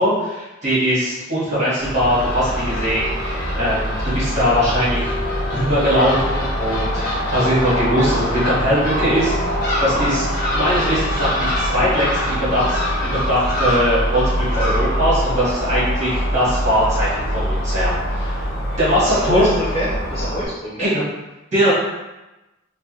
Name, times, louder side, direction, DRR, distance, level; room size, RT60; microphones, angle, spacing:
voice 1, 0.0-10.3 10.5-18.5 18.8-19.5 20.8-21.0 21.5-21.7, equal, 35° right, -10 dB, 1.3 m, -21 dB
Crow / Gull seagull, 1.8-20.4, equal, 45° left, 0.8 m, -23 dB
voice 2, 19.1-20.9, equal, 25° left, -11 dB, 1.3 m, -26 dB
3.4 x 2.1 x 2.9 m, 1.0 s
head